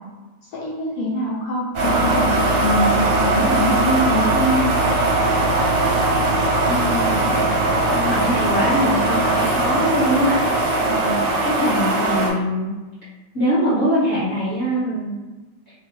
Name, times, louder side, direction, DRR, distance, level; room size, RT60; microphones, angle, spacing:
voice 1, 0.5-4.7, equal, 75° left, -6 dB, 1.4 m, -23 dB
sound 1, 1.8-12.3, right 2 dB, 75° right, 2.1 m, -19 dB
voice 2, 6.6-7.4 7.9-12.7 13.3-15.1, equal, 50° left, -12 dB, 0.9 m, -23 dB
5.3 x 2.1 x 2.8 m, 1.2 s
omnidirectional pair, 3.5 m